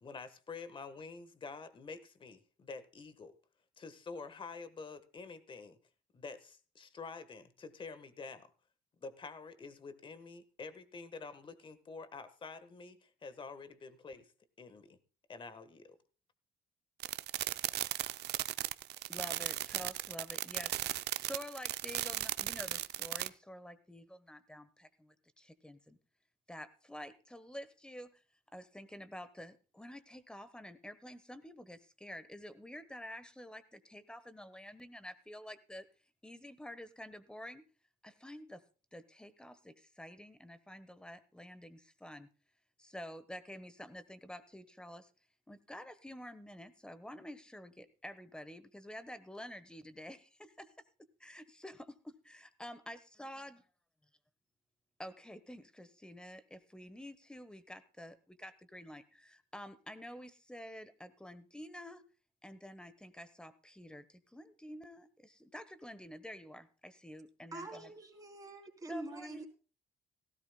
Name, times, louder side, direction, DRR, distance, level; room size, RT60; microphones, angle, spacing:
voice 1, 0.0-3.4 3.8-5.8 6.1-8.5 9.0-14.3 14.6-15.0 15.3-16.0, left 4 dB, 30° left, 12 dB, 1.3 m, -48 dB
sound 1, 17.0-23.3, right 14 dB, 70° right, 0.6 m, -36 dB
voice 2, 19.1-26.0 26.5-28.2 28.5-35.8 36.2-37.6 38.0-38.6 38.9-42.3 42.8-45.1 45.5-50.7 51.2-53.6 55.0-62.0 62.4-67.9 68.9-69.4, equal, 5° left, 13 dB, 1.1 m, -49 dB
voice 3, 67.5-69.4, right 2 dB, 20° right, 1 dB, 3.5 m, -45 dB
17.0 x 16.0 x 2.2 m, 0.36 s
cardioid pair, 145°, 18 cm